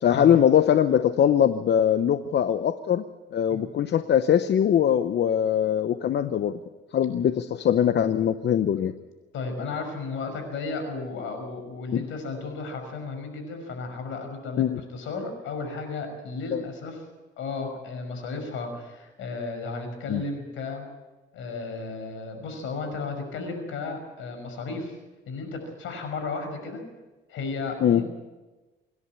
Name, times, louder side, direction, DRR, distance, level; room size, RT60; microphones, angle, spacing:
voice 1, 0.0-3.0 3.3-6.6 6.9-8.9 11.9-12.0 14.6-14.8 16.5-16.6 20.1-20.2 27.8-28.0, left 9 dB, 60° left, 10 dB, 0.9 m, -22 dB
voice 2, 9.3-17.0 17.4-20.9 21.3-25.0 25.3-26.8 27.3-28.1, left 4 dB, 85° left, 6 dB, 5.8 m, -34 dB
26.5 x 11.0 x 9.5 m, 1.2 s
cardioid pair, 90°, 20 cm